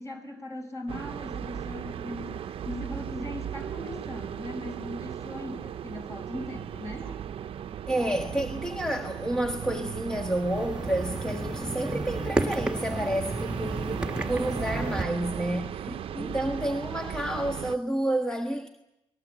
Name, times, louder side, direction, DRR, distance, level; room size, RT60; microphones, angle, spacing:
voice 1, 0.0-7.1 15.9-16.4, left 1 dB, 30° left, 6.3 m, -39 dB
sound 1, 0.9-17.8, right 9 dB, 60° right, 0.8 m, -37 dB
voice 2, 7.9-15.9 16.2-18.7, right 1 dB, 5° left, 1.5 m, -30 dB
sound 2, 10.4-15.0, right 1 dB, 10° right, 1.8 m, -32 dB
24.0 x 19.5 x 8.2 m
cardioid pair, 90°, 11 cm